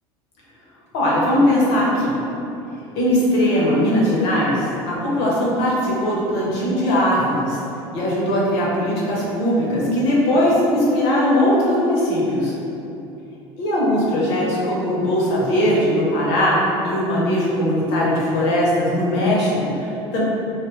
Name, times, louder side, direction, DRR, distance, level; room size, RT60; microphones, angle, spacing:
voice 1, 0.9-2.2 3.0-7.6 7.9-12.5 13.6-20.2, left 1 dB, 75° left, -5 dB, 1.0 m, -19 dB
3.2 x 2.6 x 3.1 m, 2.9 s
supercardioid pair, 85°, 13 cm